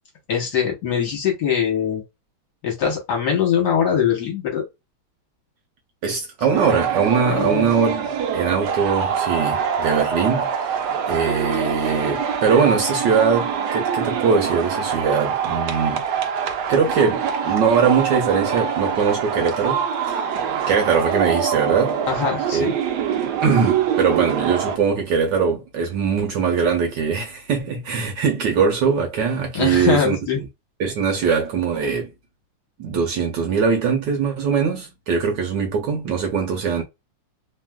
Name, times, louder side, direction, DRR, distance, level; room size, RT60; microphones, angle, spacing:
voice 1, 0.3-2.0 2.6-4.6 7.3-7.7 22.0-22.7 29.5-30.4, left 7 dB, 55° left, 1.5 m, -22 dB
voice 2, 6.0-10.8 11.1-16.0 16.7-19.8 20.1-20.2 20.7-22.0 22.5-22.7 23.4-30.2 30.8-32.1 32.8-36.8, right 6 dB, 65° right, 1.2 m, -21 dB
sound 1, 6.5-24.8, right 7 dB, 90° right, 0.9 m, -24 dB
3.4 x 2.4 x 2.2 m
omnidirectional pair, 2.4 m